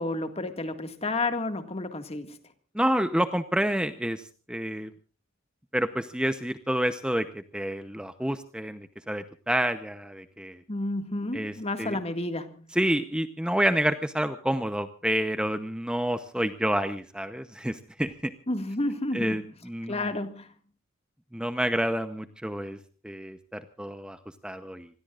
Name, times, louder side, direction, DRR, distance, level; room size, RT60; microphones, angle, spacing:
voice 1, 0.0-2.4 10.7-12.7 18.5-19.4 19.9-20.5, left 2 dB, 30° left, 8 dB, 2.0 m, -31 dB
voice 2, 2.7-4.2 4.5-4.9 5.7-10.6 11.3-11.5 11.8-12.0 12.8-18.3 19.1-20.0 21.3-22.8 23.0-24.2 24.4-24.9, right 1 dB, 5° right, 9 dB, 0.8 m, -28 dB
27.5 x 20.5 x 2.5 m, 0.38 s
head